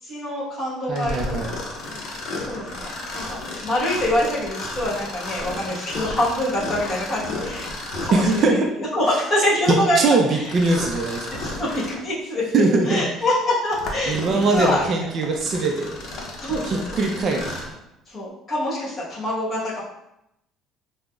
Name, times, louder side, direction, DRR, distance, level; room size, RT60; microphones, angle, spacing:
voice 1, 0.0-1.7 2.5-7.7 8.0-8.6 8.9-10.0 10.3-10.5 11.4-12.4 12.8-14.9 16.4-16.9 18.1-19.8, left 1 dB, 30° left, -6 dB, 1.2 m, -25 dB
Mechanisms, 0.9-8.6 10.4-12.1 12.6-12.7 13.4-17.8, left 2 dB, 55° left, 0.6 m, -33 dB
voice 2, 0.9-1.5 8.1-8.6 9.7-11.3 12.5-13.0 14.1-15.9 16.7-17.5, right 3 dB, 40° right, 1 dB, 0.4 m, -21 dB
5.0 x 2.0 x 2.3 m, 0.84 s
cardioid pair, 145°, 0 cm